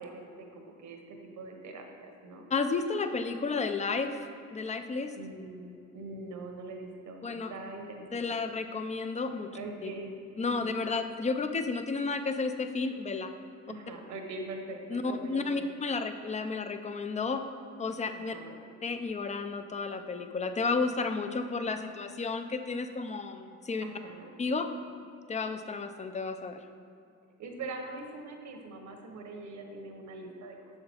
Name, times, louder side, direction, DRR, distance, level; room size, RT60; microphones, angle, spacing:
voice 1, 0.0-2.5 5.2-8.4 9.5-10.1 10.4-10.7 13.7-15.7 18.1-18.6 23.8-24.3 27.4-30.6, right 2 dB, 70° right, 3 dB, 1.1 m, -43 dB
voice 2, 2.5-5.1 7.2-7.5 8.1-9.5 9.8-9.9 10.4-13.3 14.9-17.4 17.8-18.3 18.8-23.8 24.4-24.7 25.3-26.6, left 4 dB, 25° left, 8 dB, 0.5 m, -32 dB
6.5 x 5.8 x 4.4 m, 2.5 s
cardioid pair, 90°, 30 cm